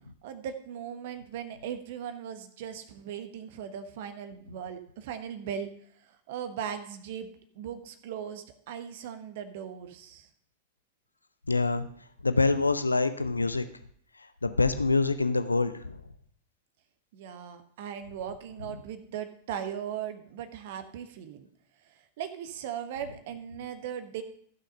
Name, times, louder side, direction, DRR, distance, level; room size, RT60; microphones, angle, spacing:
voice 1, 0.2-5.7 6.0-7.3 7.5-10.3 17.1-21.5 21.8-24.2, right 8 dB, 55° right, 9 dB, 1.2 m, -38 dB
voice 2, 11.5-11.9 12.2-13.6 14.4-15.9, left 3 dB, 80° left, 10 dB, 0.7 m, -25 dB
15.0 x 6.4 x 5.5 m, 0.62 s
figure-of-eight pair, 90°, 0 cm